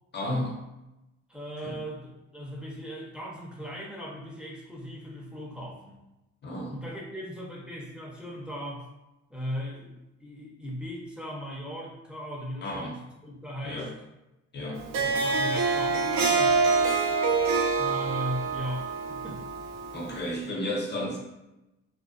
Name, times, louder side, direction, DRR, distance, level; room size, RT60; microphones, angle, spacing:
voice 1, 0.1-0.6 1.6-1.8 6.4-6.8 12.6-13.0 13.6-13.9 14.5-15.2 19.9-21.2, left 1 dB, 35° left, -1 dB, 0.7 m, -33 dB
voice 2, 1.3-6.0 6.7-8.9 9.3-13.9 15.0-16.6 17.7-19.4, equal, 5° right, -4 dB, 0.6 m, -38 dB
Harp, 14.8-20.2, right 4 dB, 65° right, 0.5 m, -26 dB
2.5 x 2.2 x 2.3 m, 0.95 s
cardioid pair, 90°, 30 cm